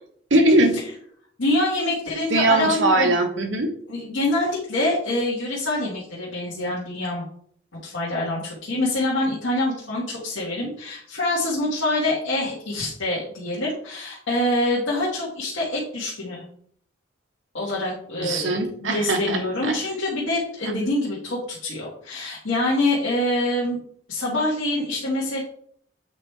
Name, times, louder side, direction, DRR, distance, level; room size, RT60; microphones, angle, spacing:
voice 1, 0.3-0.8 2.3-3.7 18.2-19.8 20.6-20.9, right 2 dB, 80° right, 4 dB, 1.2 m, -21 dB
voice 2, 1.4-3.1 3.9-7.2 7.8-16.4 17.5-23.8 24.1-25.4, left 1 dB, 85° left, -6 dB, 1.6 m, -25 dB
8.1 x 4.5 x 3.3 m, 0.63 s
head